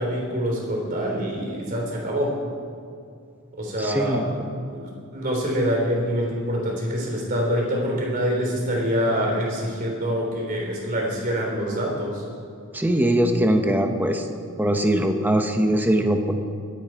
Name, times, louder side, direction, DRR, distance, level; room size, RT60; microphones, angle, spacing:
voice 1, 0.0-2.4 3.6-4.2 4.7-12.2, equal, 40° right, -1 dB, 3.7 m, -25 dB
voice 2, 3.8-4.2 12.7-14.3 14.6-16.3, right 1 dB, 10° right, 5 dB, 0.9 m, -21 dB
22.5 x 8.6 x 4.6 m, 2.4 s
head